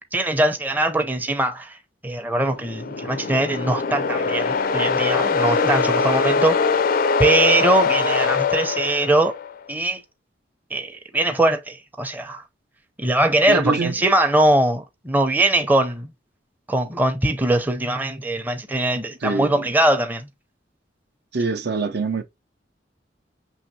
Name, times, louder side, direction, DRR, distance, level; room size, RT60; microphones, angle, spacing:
voice 1, 0.1-1.8 2.0-6.8 7.2-9.4 9.7-10.0 10.7-12.4 13.0-16.1 16.7-20.3, right 1 dB, 10° right, 0.6 m, -21 dB
sound 1, 2.5-9.5, left 4 dB, 50° left, 0.4 m, -22 dB
voice 2, 13.5-13.9 19.2-19.6 21.3-22.2, right 3 dB, 60° right, 0.6 m, -24 dB
6.3 x 3.0 x 2.7 m
head